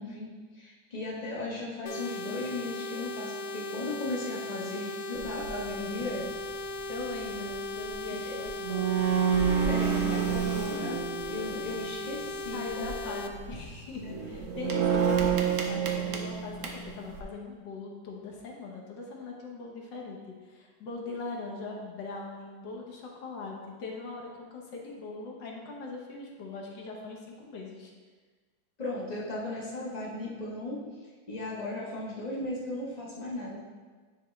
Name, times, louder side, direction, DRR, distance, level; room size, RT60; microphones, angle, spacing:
voice 1, 0.0-6.6 8.2-8.4 9.7-11.0 11.3-13.0 14.0-14.2 28.8-30.8 31.3-33.6, left 2 dB, 30° left, -5 dB, 0.8 m, -36 dB
sound 1, 1.9-13.3, left 2 dB, 90° left, 0.8 m, -37 dB
sound 2, 5.2-5.5 6.0-6.2 8.2-8.3 8.4-11.8 12.7-13.0 13.3-13.6 14.0-17.2, right 7 dB, 75° right, 0.7 m, -28 dB
voice 2, 6.9-9.2 12.5-20.2 20.4-27.9, left 3 dB, 65° left, -1 dB, 1.5 m, -41 dB
9.9 x 3.5 x 3.2 m, 1.4 s
omnidirectional pair, 2.1 m